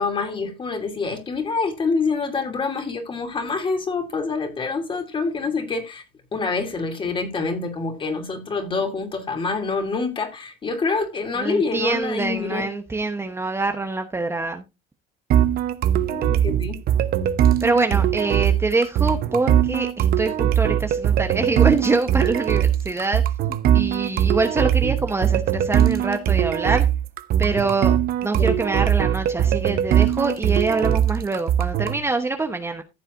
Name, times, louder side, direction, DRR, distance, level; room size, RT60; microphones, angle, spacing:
voice 1, 0.0-6.0 6.3-12.6 15.9-16.8 28.4-28.5, left 4 dB, 25° left, 2.8 m, -26 dB
voice 2, 11.4-14.6 17.6-23.2 23.7-26.9 27.4-27.9 28.2-32.8, right 3 dB, 15° right, 1.0 m, -25 dB
sound 1, 15.3-32.0, right 10 dB, 50° right, 0.9 m, -21 dB
15.0 x 7.4 x 2.6 m
supercardioid pair, 115°, 20 cm